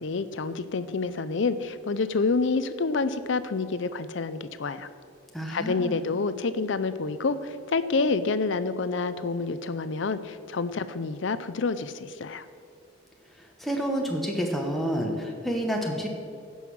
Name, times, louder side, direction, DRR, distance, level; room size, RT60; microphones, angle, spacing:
voice 1, 0.0-4.9 5.5-12.5, left 4 dB, 60° left, 13 dB, 0.5 m, -28 dB
voice 2, 5.3-5.9 13.6-16.1, equal, ahead, 0 dB, 0.9 m, -29 dB
15.5 x 5.5 x 6.2 m, 2.4 s
head